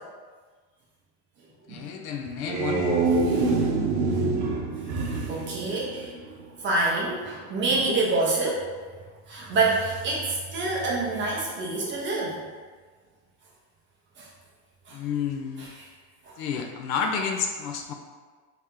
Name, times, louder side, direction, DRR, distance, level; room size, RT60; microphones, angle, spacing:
voice 1, 1.7-2.9 7.9-8.0 14.9-15.7 16.4-17.9, left 6 dB, 60° left, 4 dB, 0.5 m, -30 dB
sound 1, 2.3-6.5, right 3 dB, 70° right, 0.8 m, -26 dB
voice 2, 3.2-3.6 4.9-6.1 6.6-8.6 9.3-12.4 14.2-14.3 14.9-15.0 15.6-15.9 16.2-16.4, right 3 dB, 25° right, -4 dB, 0.6 m, -27 dB
3.2 x 2.9 x 3.6 m, 1.5 s
supercardioid pair, 145°, 50 cm